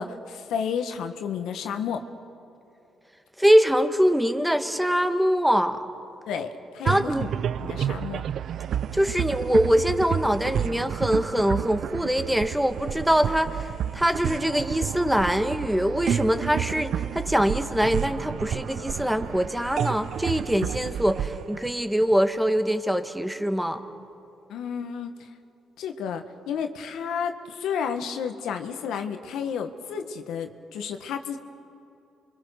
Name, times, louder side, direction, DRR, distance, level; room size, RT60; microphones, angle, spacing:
voice 1, 0.0-2.0 6.3-7.3 7.6-8.2 24.5-25.3 25.8-31.4, left 7 dB, 85° left, 6 dB, 1.6 m, -31 dB
voice 2, 3.4-5.8 6.8-7.3 8.9-23.8, equal, 5° right, 8 dB, 1.6 m, -23 dB
sound 1, 6.9-22.5, right 9 dB, 65° right, 0.5 m, -30 dB
29.0 x 24.5 x 6.6 m, 2.9 s
cardioid pair, 90°, 0 cm